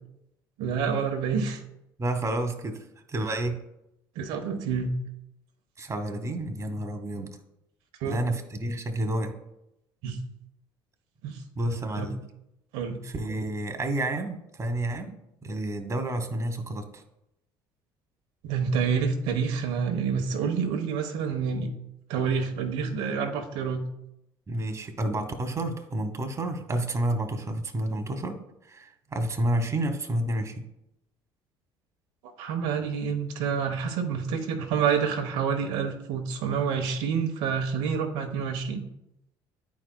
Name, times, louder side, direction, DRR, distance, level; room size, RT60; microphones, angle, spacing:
voice 1, 0.6-1.6 4.1-4.9 8.0-8.2 10.0-10.2 11.2-11.4 12.0-12.1 12.7-13.1 18.4-21.7 22.1-23.8 32.4-38.8, right 6 dB, 75° right, 5 dB, 1.0 m, -28 dB
voice 2, 2.0-3.6 5.8-7.3 8.0-9.3 11.6-12.2 13.0-15.2 15.4-17.0 24.5-28.4 28.7-30.7, right 1 dB, 25° right, 6 dB, 1.1 m, -30 dB
10.5 x 4.8 x 2.2 m, 0.84 s
hypercardioid pair, 65°, 11 cm